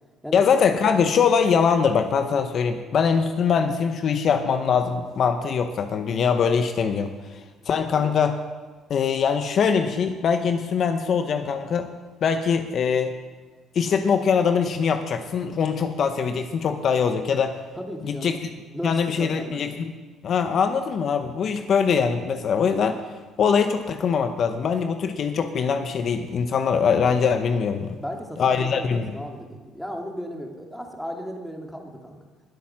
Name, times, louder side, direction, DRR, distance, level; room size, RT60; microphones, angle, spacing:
voice 1, 0.3-7.4 7.7-8.3 8.9-11.9 12.2-13.1 13.7-17.6 18.1-18.4 18.8-19.9 20.2-23.0 23.4-28.0 28.4-29.1, left 6 dB, 55° left, 8 dB, 1.0 m, -22 dB
voice 2, 17.8-18.4 18.7-19.6 28.0-32.2, equal, ahead, 1 dB, 2.7 m, -35 dB
20.0 x 8.6 x 6.1 m, 1.3 s
cardioid pair, 90°, 0 cm